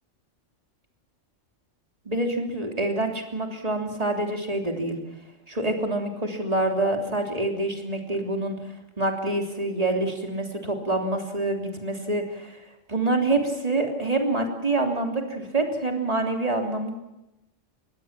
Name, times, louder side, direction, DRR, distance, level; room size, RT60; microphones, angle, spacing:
voice 1, 2.0-5.0 5.5-8.6 9.0-12.6 12.9-16.9, right 2 dB, 30° right, 2 dB, 3.4 m, -26 dB
24.5 x 19.5 x 7.5 m, 0.93 s
omnidirectional pair, 1.3 m